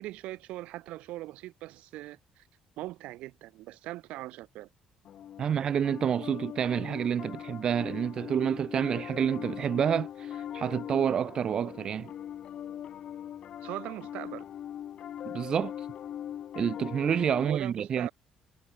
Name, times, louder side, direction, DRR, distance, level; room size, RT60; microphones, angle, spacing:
voice 1, 0.0-2.4 2.8-4.7 13.6-14.5 17.4-18.1, right 17 dB, 85° right, 7.6 m, -40 dB
Piano, 5.0-17.5, left 10 dB, 50° left, 2.7 m, -41 dB
voice 2, 5.4-12.1 15.3-15.9 16.5-18.1, right 8 dB, 40° right, 0.5 m, -28 dB
cardioid pair, 155°, 2 cm